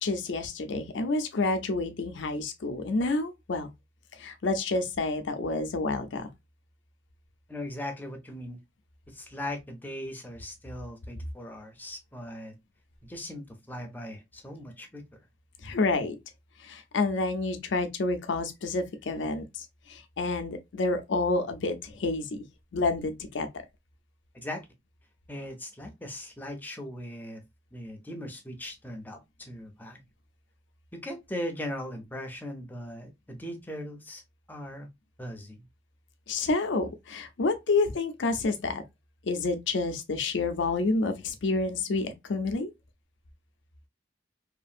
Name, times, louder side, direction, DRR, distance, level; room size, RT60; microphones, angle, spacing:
voice 1, 0.0-3.7 4.2-6.3 15.6-16.2 16.6-22.4 22.7-23.5 36.3-38.8 39.3-42.7, left 3 dB, 85° left, 0.5 m, -29 dB
voice 2, 7.5-8.6 9.1-12.6 13.0-15.2 24.4-24.7 25.3-27.4 27.7-30.0 30.9-34.2 34.5-34.9 35.2-35.6, left 1 dB, 10° left, 0.6 m, -39 dB
2.8 x 2.5 x 2.3 m
head